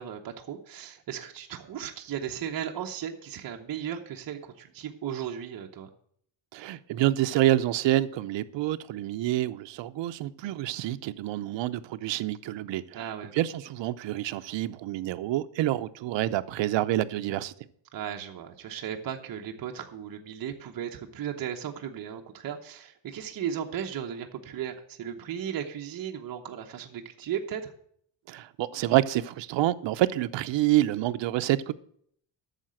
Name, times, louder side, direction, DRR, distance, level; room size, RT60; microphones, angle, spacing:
voice 1, 0.0-5.9 12.9-13.3 17.9-27.7, right 9 dB, 50° right, 1.0 m, -36 dB
voice 2, 6.5-13.0 13.3-17.5 28.3-31.7, right 15 dB, 75° right, 0.6 m, -27 dB
9.1 x 6.6 x 7.6 m
cardioid pair, 160°, 45 cm